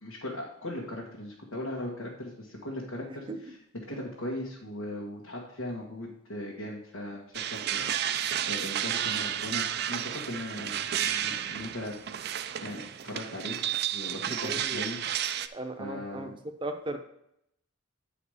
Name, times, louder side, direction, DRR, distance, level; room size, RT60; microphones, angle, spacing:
voice 1, 0.0-3.6 3.9-7.2 7.5-12.3 12.6-13.6 13.9-15.0 15.8-16.3, left 1 dB, 80° left, -4 dB, 1.5 m, -38 dB
sound 1, 7.3-15.5, right 10 dB, 50° right, 0.4 m, -32 dB
voice 2, 14.3-14.8 15.5-16.3 16.6-17.0, right 2 dB, 25° right, 5 dB, 0.7 m, -36 dB
9.1 x 4.9 x 4.9 m, 0.77 s
head